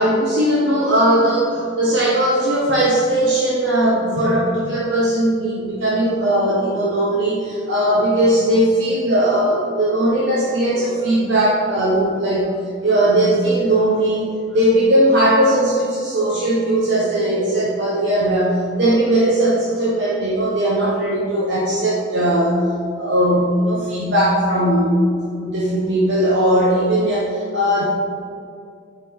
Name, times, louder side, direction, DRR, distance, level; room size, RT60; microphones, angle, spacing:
voice 1, 0.0-12.5 12.8-22.7 23.0-25.0 25.4-27.8, right 1 dB, 65° right, -6 dB, 1.1 m, -18 dB
9.0 x 5.3 x 3.6 m, 2.3 s
head